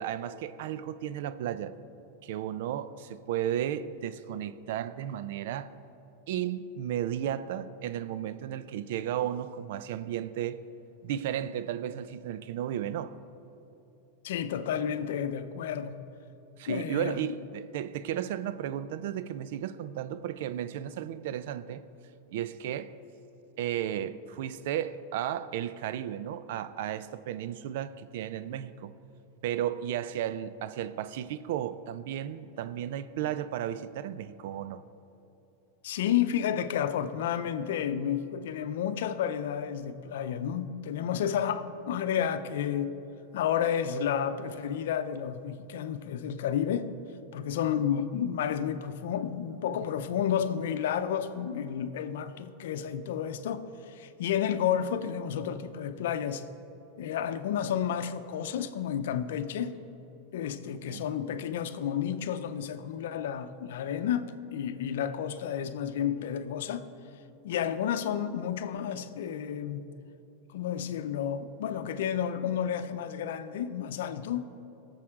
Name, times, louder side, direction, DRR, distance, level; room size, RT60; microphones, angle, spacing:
voice 1, 0.0-1.8 2.2-5.7 6.3-10.6 11.0-13.1 16.6-21.8 22.3-22.9 23.6-28.9 29.4-34.8 60.9-61.0, right 10 dB, 70° right, 0.5 m, -34 dB
voice 2, 14.2-16.0 16.7-17.3 35.8-42.9 43.3-46.9 47.3-56.4 57.0-59.7 60.3-66.8 67.4-69.9 70.5-74.4, left 9 dB, 75° left, 0.6 m, -31 dB
18.0 x 7.3 x 3.7 m
hypercardioid pair, 120°, 0 cm